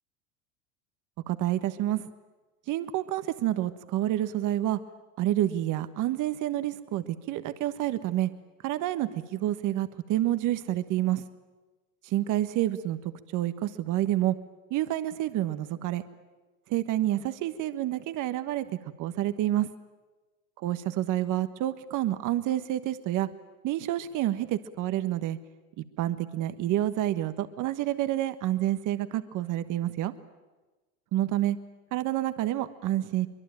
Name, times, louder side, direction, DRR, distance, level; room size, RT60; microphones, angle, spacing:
voice 1, 1.3-2.1 2.7-4.8 5.2-8.3 8.6-11.2 12.0-14.3 14.7-16.0 16.7-18.7 19.0-19.7 20.6-23.3 23.6-25.4 25.8-30.1 31.1-31.6 31.9-33.3, right 13 dB, 45° right, 11 dB, 1.4 m, -28 dB
23.5 x 23.0 x 9.0 m, 1.2 s
hypercardioid pair, 95°, 42 cm